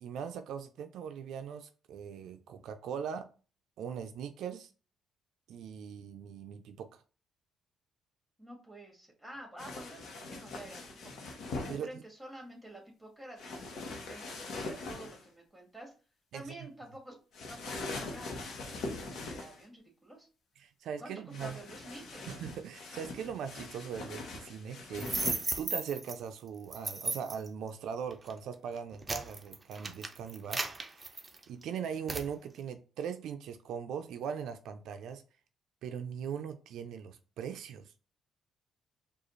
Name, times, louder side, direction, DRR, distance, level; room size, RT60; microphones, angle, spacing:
voice 1, 0.0-3.3 3.8-4.7 5.5-7.0 11.7-11.9 16.3-16.5 20.6-21.6 22.3-30.6 31.5-35.2 35.8-37.9, right 7 dB, 80° right, 8 dB, 0.4 m, -40 dB
voice 2, 8.4-11.1 11.7-15.9 16.3-17.2 17.5-20.3 21.0-22.3, right 1 dB, ahead, -1 dB, 1.8 m, -49 dB
sound 1, 9.6-11.8 13.4-15.2 17.3-19.6 21.3-25.5, left 3 dB, 70° left, 0.9 m, -42 dB
sound 2, 25.0-26.1 26.7-27.5 28.1-28.3 28.8-31.6 32.1-32.3, right 3 dB, 25° right, 0.6 m, -35 dB
4.8 x 2.4 x 3.1 m, 0.36 s
cardioid pair, 90°, 0 cm